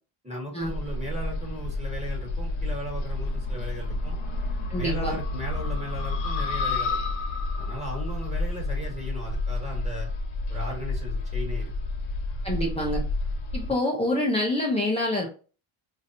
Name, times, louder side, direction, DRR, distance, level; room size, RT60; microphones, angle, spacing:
voice 1, 0.2-4.2 4.7-7.0 7.5-10.1 10.5-11.7, equal, 15° right, -1 dB, 1.3 m, -37 dB
sound 1, 0.6-13.7, left 2 dB, 70° left, 0.9 m, -30 dB
voice 2, 4.7-5.2 12.4-13.0 13.5-15.3, left 1 dB, 15° left, -2 dB, 0.6 m, -26 dB
3.0 x 2.7 x 2.6 m, 0.36 s
cardioid pair, 115°, 50 cm